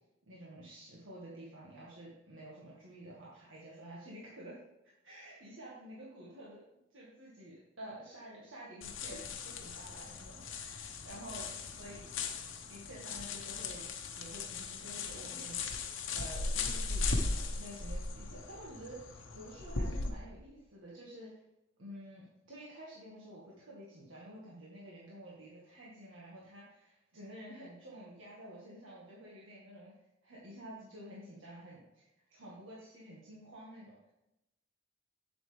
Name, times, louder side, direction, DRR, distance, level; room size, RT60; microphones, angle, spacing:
voice 1, 0.3-4.6 5.0-6.6 6.9-12.1 12.7-13.8 14.2-15.9 16.1-21.4 21.8-29.9 30.2-34.1, right 1 dB, 70° right, -5 dB, 1.7 m, -50 dB
sound 1, 8.8-20.1, left 3 dB, 70° left, 1.0 m, -38 dB
8.1 x 7.7 x 3.4 m, 0.93 s
head